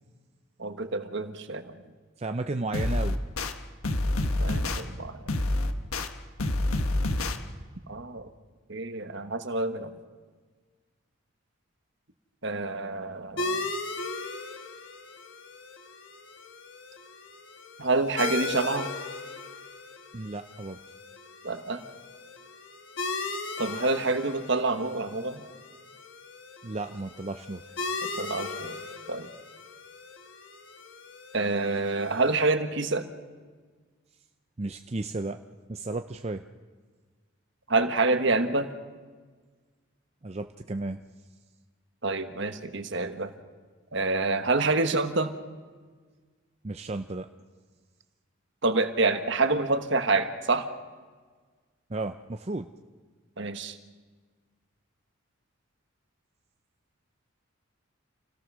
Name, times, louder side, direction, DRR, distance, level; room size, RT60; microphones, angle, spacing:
voice 1, 0.6-1.8 4.4-5.2 7.9-8.3 8.7-9.9 12.4-13.6 17.8-18.9 21.4-21.8 23.6-25.4 28.2-28.8 29.1-29.3 31.3-33.1 37.7-38.7 42.0-43.3 43.9-45.3 48.6-50.7 53.4-53.8, right 3 dB, 55° right, 9 dB, 1.4 m, -27 dB
voice 2, 2.2-3.2 20.1-20.8 26.6-27.7 34.6-35.4 35.7-36.5 40.2-41.0 46.6-47.3 51.9-52.7, right 2 dB, 30° right, 7 dB, 0.5 m, -33 dB
sound 1, 2.7-3.5 3.8-4.8 5.3-6.1 6.4-7.4, left 1 dB, 85° left, 1.4 m, -27 dB
sound 2, 13.4-32.5, left 3 dB, 60° left, 1.4 m, -38 dB
28.0 x 17.5 x 6.2 m, 1.5 s
head